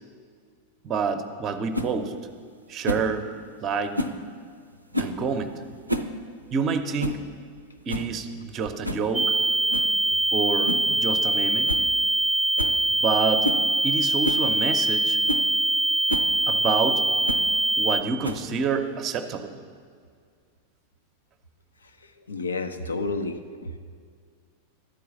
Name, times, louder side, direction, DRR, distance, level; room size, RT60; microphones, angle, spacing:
voice 1, 0.8-2.1 2.7-3.3 3.6-4.0 5.0-5.6 6.5-7.2 7.9-9.3 10.3-11.8 12.9-13.5 13.8-15.2 16.5-17.0 17.8-19.5, right 5 dB, 30° right, 8 dB, 0.7 m, -28 dB
sound 1, 1.7-1.9 2.8-3.1 3.9-4.2 4.9-5.2 5.7-6.1 6.4-6.5 7.0-7.2 7.6-7.7 7.9-8.2 8.8-9.1 9.7-9.9 10.7-10.9 11.2-11.3 11.7-11.9 12.2-12.3 12.6-12.8 13.4-13.7 14.2-14.5 14.9-15.0 15.3-15.5 16.1-16.3 17.3-17.5 18.2-18.6, equal, 85° right, 0.5 m, -29 dB
sound 2, 9.1-18.0, right 2 dB, 5° left, 0.3 m, -23 dB
voice 2, 22.2-23.7, left 3 dB, 75° left, 8 dB, 0.6 m, -31 dB
12.0 x 4.7 x 7.0 m, 2.1 s
figure-of-eight pair, 90°, 0 cm